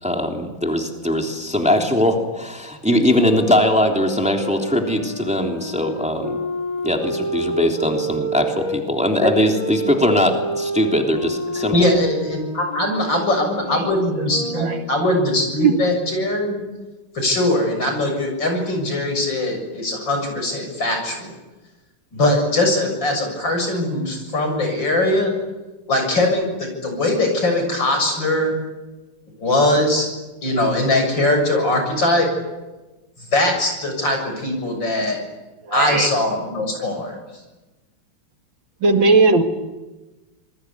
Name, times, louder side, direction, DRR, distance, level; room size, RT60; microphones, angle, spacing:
voice 1, 0.0-6.4 6.8-11.8, left 1 dB, 5° right, 2 dB, 3.2 m, -20 dB
sound 1, 3.0-8.8 9.5-15.0, right 1 dB, 15° left, 4.9 m, -29 dB
voice 2, 11.6-16.6 17.1-21.3 22.1-25.3 25.9-28.5 29.4-30.1 30.4-32.3 33.3-35.2 35.7-37.2, left 1 dB, 60° left, 4 dB, 7.7 m, -21 dB
voice 3, 35.7-36.1 38.8-39.4, right 3 dB, 65° right, 6 dB, 2.7 m, -16 dB
27.0 x 22.5 x 9.7 m, 1.1 s
omnidirectional pair, 2.3 m